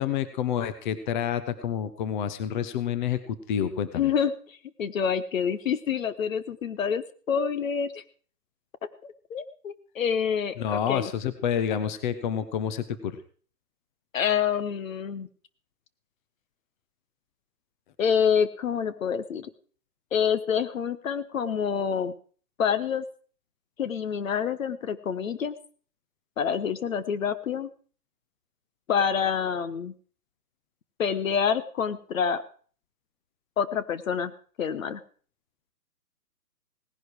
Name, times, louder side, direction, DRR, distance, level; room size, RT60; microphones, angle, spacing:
voice 1, 0.0-4.1 10.6-13.2, left 9 dB, 30° left, 13 dB, 1.0 m, -28 dB
voice 2, 3.9-8.0 9.0-11.1 14.1-15.3 18.0-19.5 20.1-22.1 22.6-23.0 23.8-25.5 26.4-27.7 28.9-29.9 31.0-32.4 33.6-34.3 34.6-35.0, left 7 dB, 55° left, 13 dB, 1.2 m, -27 dB
18.0 x 11.0 x 4.7 m, 0.43 s
figure-of-eight pair, 135°, 47 cm